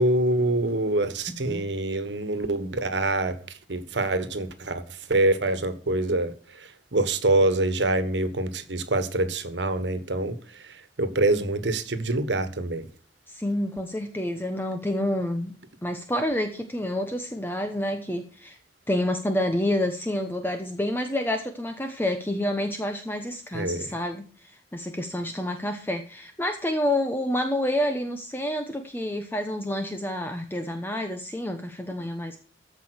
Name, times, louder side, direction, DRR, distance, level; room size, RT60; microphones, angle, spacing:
voice 1, 0.0-3.4 3.7-4.8 5.1-6.3 6.9-10.3 11.0-12.9 23.5-23.9, right 2 dB, 85° right, 1.4 m, -25 dB
voice 2, 1.3-1.7 13.3-15.5 15.8-18.6 18.9-32.4, left 1 dB, 10° left, 0.9 m, -28 dB
14.0 x 5.5 x 6.3 m
head